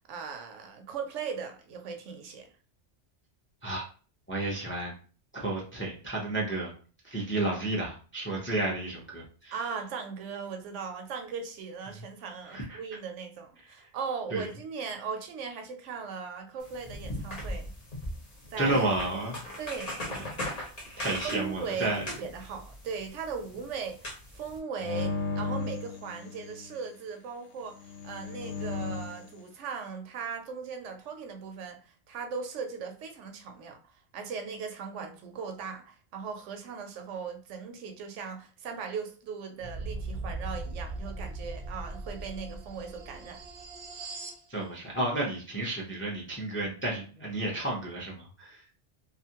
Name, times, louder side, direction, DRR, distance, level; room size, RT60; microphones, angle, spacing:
voice 1, 0.0-2.5 9.5-17.7 18.5-18.8 19.6-20.0 21.2-24.0 24.3-31.8 32.1-33.8 34.1-43.4, right 5 dB, 85° right, 0.9 m, -38 dB
voice 2, 4.3-4.9 5.3-6.7 7.0-9.7 11.9-12.1 12.4-12.8 14.3-14.5 18.6-19.4 20.1-20.2 21.0-22.1 44.5-48.7, right 2 dB, 15° left, 0.4 m, -32 dB
sound 1, 16.6-24.6, left 1 dB, 40° left, 0.8 m, -40 dB
sound 2, 24.8-26.8 27.8-29.3, left 4 dB, 75° left, 1.0 m, -35 dB
sound 3, 39.6-44.4, right 2 dB, 60° right, 0.6 m, -39 dB
2.5 x 2.4 x 2.8 m
omnidirectional pair, 1.2 m